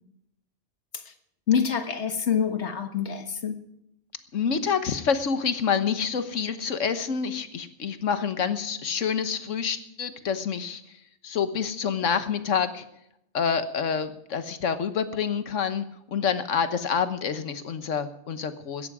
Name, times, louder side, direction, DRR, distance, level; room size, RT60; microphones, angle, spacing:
voice 1, 1.5-3.6, left 7 dB, 65° left, 8 dB, 1.7 m, -26 dB
voice 2, 4.3-10.8 11.2-12.8 13.3-18.9, left 6 dB, 80° left, 11 dB, 1.5 m, -27 dB
17.0 x 13.5 x 4.9 m, 0.79 s
omnidirectional pair, 1.3 m